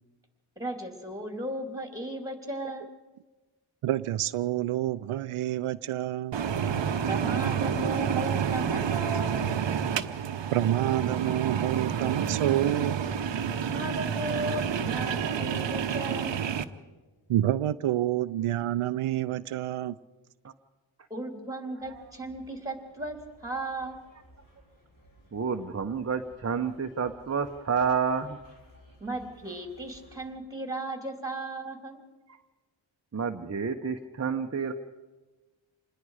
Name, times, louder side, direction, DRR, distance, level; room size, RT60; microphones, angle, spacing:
voice 1, 0.6-2.9 7.0-9.5 13.7-16.4 21.1-24.0 29.0-32.0, right 2 dB, 5° right, 4 dB, 3.3 m, -35 dB
voice 2, 3.8-6.4 10.5-13.0 17.3-20.0, right 13 dB, 90° right, 14 dB, 0.6 m, -28 dB
sound 1, 6.3-16.6, right 7 dB, 60° right, 0.9 m, -29 dB
sound 2, 21.8-30.3, right 1 dB, 40° left, 5.8 m, -58 dB
voice 3, 25.3-28.4 33.1-34.7, right 6 dB, 30° right, 5 dB, 0.9 m, -29 dB
27.0 x 21.0 x 4.9 m, 1.3 s
wide cardioid pair, 100°, 49 cm